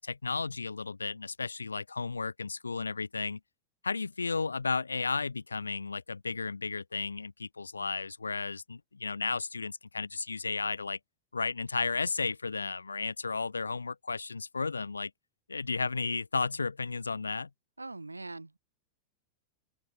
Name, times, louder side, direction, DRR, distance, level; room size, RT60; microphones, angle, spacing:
voice 1, 0.0-3.4 3.8-11.0 11.3-15.1 15.5-17.5, left 4 dB, 80° left, 0.7 m, -33 dB
voice 2, 17.8-18.6, right 2 dB, 80° right, 1.1 m, -42 dB
open air
figure-of-eight pair, 90°, 0 cm